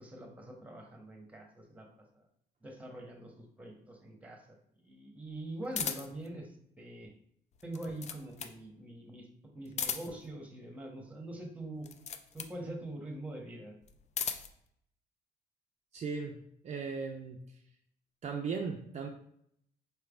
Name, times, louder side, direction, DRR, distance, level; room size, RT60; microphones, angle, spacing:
voice 1, 0.0-1.9 2.6-3.3 3.6-4.4 4.8-6.5 6.8-7.1 7.6-9.2 9.5-11.9 12.3-13.7, right 1 dB, 10° right, 1 dB, 0.9 m, -43 dB
sound 1, 5.7-6.3 7.6-8.6 9.7-10.3 11.8-12.6 13.8-14.6, left 7 dB, 45° left, 0.4 m, -37 dB
voice 2, 15.9-16.4 16.6-17.4 18.2-19.1, right 5 dB, 45° right, 1 dB, 0.4 m, -37 dB
4.4 x 3.3 x 2.3 m, 0.70 s
cardioid pair, 95°, 17 cm